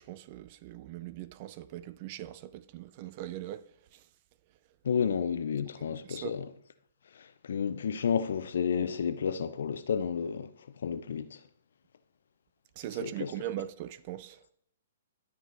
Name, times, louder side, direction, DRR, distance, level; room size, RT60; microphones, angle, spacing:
voice 1, 0.0-3.6 3.9-4.1 5.8-6.4 12.8-14.4, right 13 dB, 40° right, 0.4 m, -40 dB
voice 2, 4.8-6.5 7.2-10.5 10.8-11.4 12.9-13.3, left 7 dB, 70° left, 0.8 m, -31 dB
12.5 x 5.0 x 4.0 m
hypercardioid pair, 130°, 0 cm